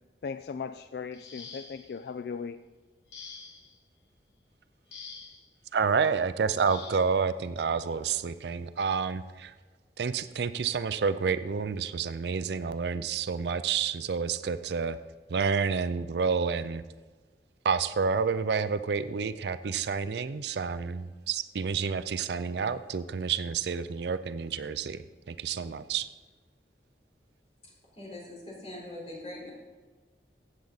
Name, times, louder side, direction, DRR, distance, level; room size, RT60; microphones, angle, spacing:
voice 1, 0.2-2.6, left 5 dB, 60° left, 11 dB, 0.3 m, -37 dB
sound 1, 1.1-2.0 3.1-3.8 4.9-5.5 6.7-7.1 8.3-8.5 9.0-9.2, left 5 dB, 80° left, 1.3 m, -46 dB
voice 2, 5.7-9.5 10.0-15.0 15.3-16.8 17.6-25.0 25.3-26.1, right 5 dB, 70° right, 13 dB, 0.4 m, -29 dB
voice 3, 27.9-29.5, left 1 dB, 35° left, -4 dB, 4.2 m, -42 dB
15.5 x 7.7 x 4.0 m, 1.3 s
head